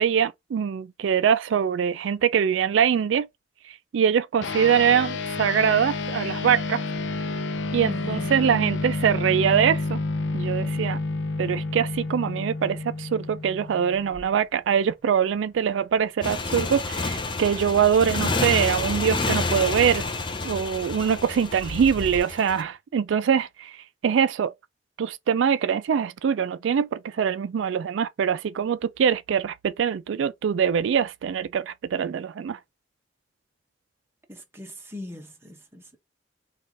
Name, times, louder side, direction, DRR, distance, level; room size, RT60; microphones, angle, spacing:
voice 1, 0.0-3.3 3.9-6.8 7.7-10.0 10.3-11.0 11.4-20.1 20.4-23.7 24.0-24.5 25.0-32.6, right 8 dB, 85° right, 0.3 m, -23 dB
sound 1, 4.4-14.2, left 3 dB, 75° left, 0.5 m, -30 dB
voice 2, 7.8-8.4 34.3-36.0, left 1 dB, 15° right, 0.9 m, -40 dB
sound 2, 12.6-22.2, right 2 dB, 50° left, 1.3 m, -47 dB
Motorcycle, 16.2-22.6, left 3 dB, 25° left, 0.5 m, -29 dB
3.2 x 2.4 x 4.0 m
head